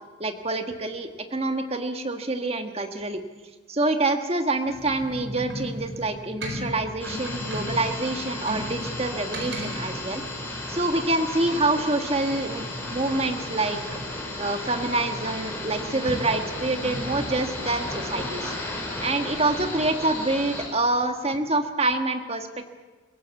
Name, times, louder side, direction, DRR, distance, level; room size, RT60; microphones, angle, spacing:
voice 1, 0.2-3.2 3.7-10.2 10.7-14.0 14.4-22.5, right 2 dB, 30° right, 6 dB, 1.5 m, -26 dB
sound 1, 4.7-18.3, equal, 60° right, 4.6 m, -38 dB
sound 2, 7.0-20.7, left 2 dB, 10° left, 4.8 m, -34 dB
22.5 x 17.0 x 8.4 m, 1.3 s
head